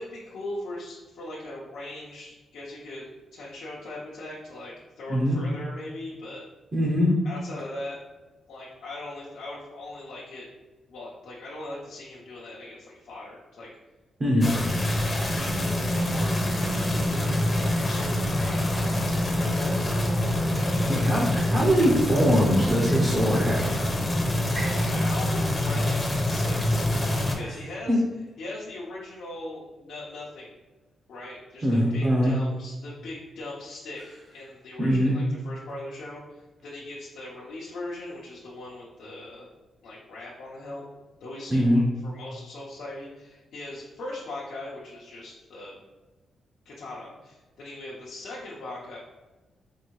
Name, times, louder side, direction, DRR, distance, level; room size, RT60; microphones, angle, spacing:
voice 1, 0.0-6.4 7.2-8.0 8.5-10.5 10.9-13.7 14.4-14.6 15.3-16.4 16.7-19.9 20.5-21.2 24.6-26.8 27.2-28.0 28.4-30.5 31.1-39.5 39.8-40.8 41.2-45.7 46.6-49.0, left 2 dB, 80° left, -7 dB, 0.7 m, -40 dB
voice 2, 5.1-5.4 6.7-7.1 14.2-14.5 20.9-23.8 24.5-24.9 27.5-27.6 27.9-28.1 31.6-32.4 34.8-35.2 41.5-41.8, equal, 25° right, -3 dB, 0.7 m, -22 dB
sound 1, 14.4-27.4, left 1 dB, 20° left, 0.7 m, -25 dB
4.6 x 2.6 x 3.0 m, 1.2 s
wide cardioid pair, 140°, 0 cm